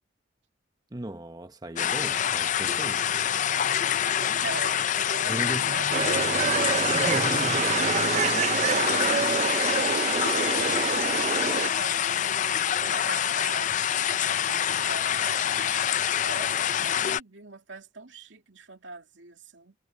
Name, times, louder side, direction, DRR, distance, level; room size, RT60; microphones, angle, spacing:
voice 1, 0.9-3.3 5.3-5.7 6.5-7.6, right 1 dB, 20° right, 0.9 m, -36 dB
sound 1, 1.8-17.2, left 9 dB, 40° left, 0.4 m, -26 dB
voice 2, 3.5-7.7 8.1-19.7, right 4 dB, 90° right, 2.5 m, -42 dB
sound 2, 5.9-11.7, right 6 dB, 40° right, 0.4 m, -27 dB
head